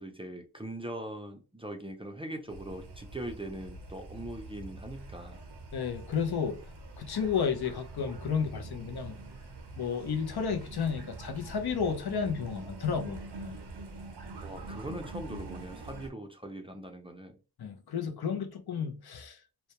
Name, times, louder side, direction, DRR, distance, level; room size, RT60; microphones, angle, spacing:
voice 1, 0.0-5.4 14.4-17.4, right 1 dB, 15° right, 0.4 m, -41 dB
sound 1, 2.5-16.1, right 2 dB, 85° right, 0.6 m, -45 dB
voice 2, 5.7-6.6 7.0-9.2 9.8-13.6 17.6-19.4, left 6 dB, 70° left, 0.5 m, -32 dB
2.1 x 2.1 x 2.8 m
wide cardioid pair, 60°, 39 cm